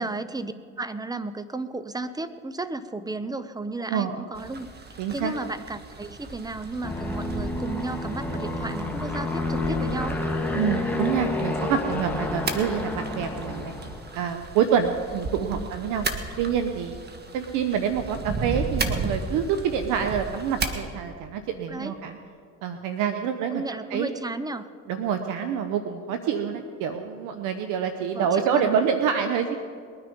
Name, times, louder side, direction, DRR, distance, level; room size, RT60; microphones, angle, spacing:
voice 1, 0.0-10.2 15.5-15.7 21.7-22.0 23.5-24.7 28.1-28.8, right 2 dB, 10° right, 12 dB, 0.8 m, -34 dB
sound 1, 4.3-20.8, right 3 dB, 30° right, 1.5 m, -35 dB
voice 2, 5.0-5.3 10.5-13.7 14.1-16.1 16.4-17.0 17.3-22.2 22.6-23.6 23.9-24.1 24.9-29.6, right 7 dB, 75° right, 7 dB, 0.9 m, -26 dB
Aircraft, 6.8-14.2, left 2 dB, 5° left, 1.8 m, -29 dB
21.0 x 9.7 x 5.3 m, 2.2 s
supercardioid pair, 80°, 31 cm